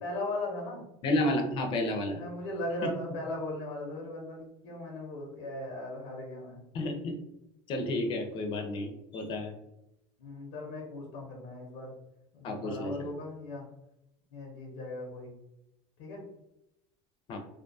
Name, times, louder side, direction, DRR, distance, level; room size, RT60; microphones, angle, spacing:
voice 1, 0.0-0.8 2.1-6.6 10.2-11.9 12.3-13.6 14.3-15.3 16.0-16.2, left 2 dB, 85° left, -1 dB, 0.7 m, -38 dB
voice 2, 1.0-2.2 2.8-2.9 6.7-7.1 7.7-9.5 12.4-13.1 17.3-17.4, left 1 dB, 40° left, 4 dB, 0.5 m, -31 dB
2.5 x 2.3 x 2.6 m, 0.86 s
cardioid pair, 150°, 13 cm